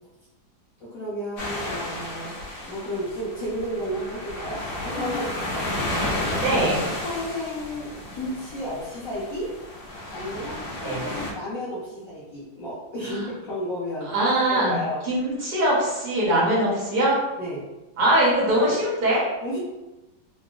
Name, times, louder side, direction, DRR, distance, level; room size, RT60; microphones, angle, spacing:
voice 1, 0.8-5.6 5.9-6.4 7.0-9.5 10.1-14.1 14.5-15.0 17.4-17.6 19.4-19.6, equal, 60° left, -8 dB, 0.9 m, -32 dB
sound 1, 1.4-11.3, left 1 dB, 80° left, 1.4 m, -32 dB
voice 2, 6.4-6.9 10.8-11.0 13.0-13.3 14.1-14.8 15.0-17.2 18.0-19.2, right 1 dB, 60° right, -6 dB, 1.4 m, -22 dB
3.8 x 2.1 x 2.3 m, 1.0 s
omnidirectional pair, 2.0 m